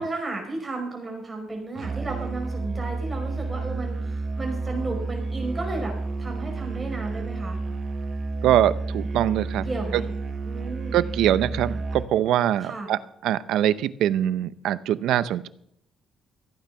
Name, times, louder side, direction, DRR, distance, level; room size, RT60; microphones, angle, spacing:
voice 1, 0.0-5.9 6.2-7.6 9.6-10.1 10.4-11.0 12.6-12.9, right 3 dB, 20° right, 1 dB, 5.2 m, -33 dB
Musical instrument, 1.8-12.1, right 3 dB, 40° right, 1.4 m, -31 dB
voice 2, 8.4-9.7 10.9-15.5, right 11 dB, 85° right, 16 dB, 0.6 m, -23 dB
15.0 x 8.9 x 5.8 m, 0.72 s
cardioid pair, 120°, 0 cm